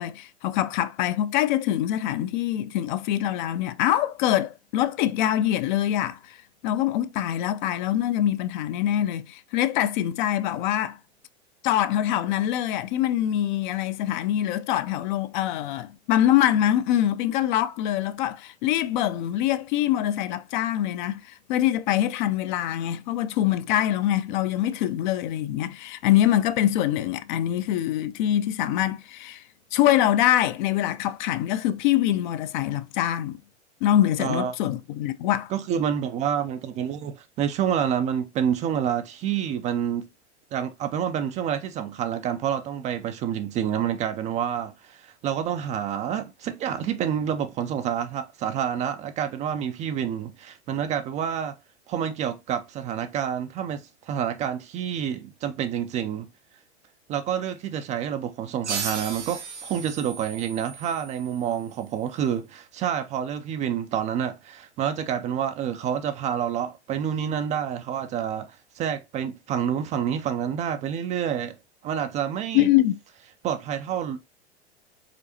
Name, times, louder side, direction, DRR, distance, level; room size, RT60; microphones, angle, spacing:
voice 1, 0.0-6.4 6.6-11.0 11.6-29.4 29.7-33.4 33.8-35.5 72.5-73.0, left 12 dB, 45° left, 0.5 m, -24 dB
voice 2, 34.2-34.5 35.5-40.1 40.5-51.6 51.9-56.3 57.1-71.6 71.8-72.7 73.4-74.2, right 9 dB, 20° right, 0.4 m, -28 dB
sound 1, 58.6-61.9, right 5 dB, 90° right, 1.2 m, -36 dB
5.0 x 3.9 x 2.8 m
figure-of-eight pair, 95°, 34 cm